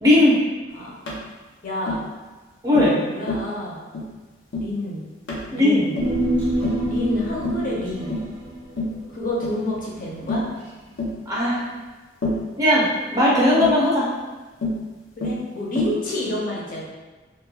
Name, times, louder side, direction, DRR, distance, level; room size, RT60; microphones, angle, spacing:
voice 1, 0.0-0.4 2.6-3.0 5.5-5.9 11.3-11.6 12.6-14.1, left 1 dB, 20° right, -6 dB, 0.6 m, -18 dB
Tap, 1.1-1.2 1.9-2.1 2.7-3.0 3.3-3.5 3.9-4.1 4.5-4.7 5.3-5.5 6.0-6.2 6.6-6.9 7.4-7.7 8.1-8.3 8.8-9.0 9.4-9.6 10.3-10.5 11.0-11.2 12.2-12.5 13.6-13.8 14.6-14.8 15.2-15.4 15.8-16.0, left 1 dB, 85° left, 0.6 m, -27 dB
voice 2, 1.6-2.0 2.8-3.8 4.6-5.0 5.5-6.0 6.9-8.2 9.1-10.4 15.2-16.8, left 1 dB, 50° left, -4 dB, 0.6 m, -28 dB
Human voice, 6.0-10.6 10.9-11.0, right 1 dB, 85° right, 0.9 m, -27 dB
3.0 x 2.2 x 2.3 m, 1.3 s
head